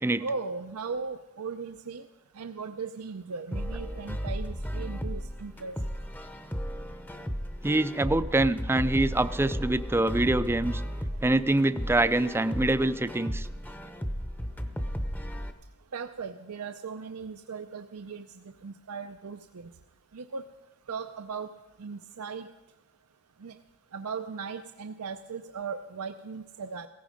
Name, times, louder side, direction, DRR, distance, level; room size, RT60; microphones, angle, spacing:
voice 1, 0.2-2.0 2.4-5.8 15.9-18.3 18.6-19.7 20.1-20.5 20.9-21.5 21.8-22.5 23.4-23.6 23.9-26.9, right 5 dB, 85° right, 8 dB, 0.6 m, -37 dB
sound 1, 3.5-15.5, equal, 10° left, 0.8 m, -34 dB
voice 2, 7.6-10.8 11.2-13.5, right 2 dB, 10° right, 13 dB, 0.4 m, -25 dB
17.0 x 15.0 x 5.1 m, 1.1 s
head